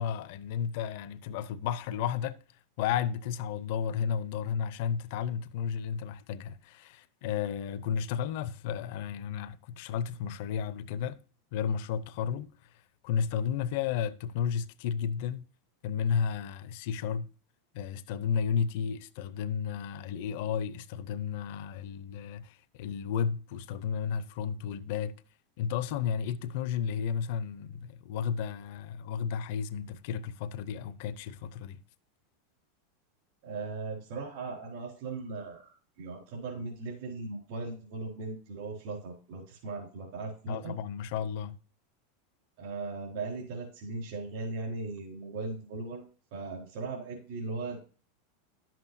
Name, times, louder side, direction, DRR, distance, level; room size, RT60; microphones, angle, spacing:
voice 1, 0.0-2.4 2.8-11.2 11.5-12.5 13.0-15.5 15.8-17.3 17.7-25.1 25.6-31.8 40.5-41.6, left 7 dB, 65° left, 0.7 m, -33 dB
voice 2, 33.4-40.7 42.6-46.0 46.3-47.9, right 3 dB, 65° right, 3.9 m, -38 dB
11.0 x 7.6 x 2.7 m
supercardioid pair, 130°, 0 cm